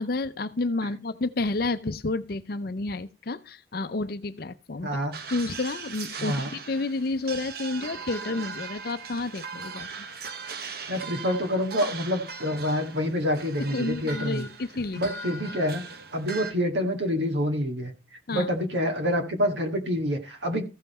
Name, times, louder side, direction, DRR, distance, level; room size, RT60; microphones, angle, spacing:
voice 1, 0.0-5.0 5.3-9.9 13.7-15.1 18.3-18.5, left 3 dB, 55° left, 0.6 m, -30 dB
sound 1, 5.1-16.5, right 4 dB, 55° right, 1.0 m, -39 dB
voice 2, 6.2-6.5 10.9-14.4 14.9-15.8 16.1-17.9 18.3-20.6, equal, 85° right, 2.1 m, -27 dB
14.5 x 5.7 x 4.3 m
head